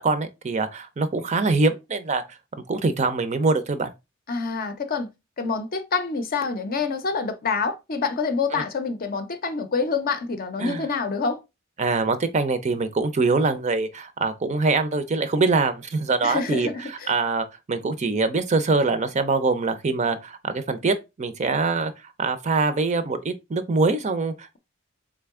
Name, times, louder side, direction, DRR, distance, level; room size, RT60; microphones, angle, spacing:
voice 1, 0.0-2.2 2.7-3.9 8.5-8.6 10.6-10.8 11.8-21.9 22.2-24.6, right 3 dB, 35° right, 0.5 m, -24 dB
voice 2, 4.3-5.1 5.4-11.4 16.2-17.1, left 4 dB, 45° left, 0.6 m, -27 dB
3.7 x 3.3 x 3.5 m
head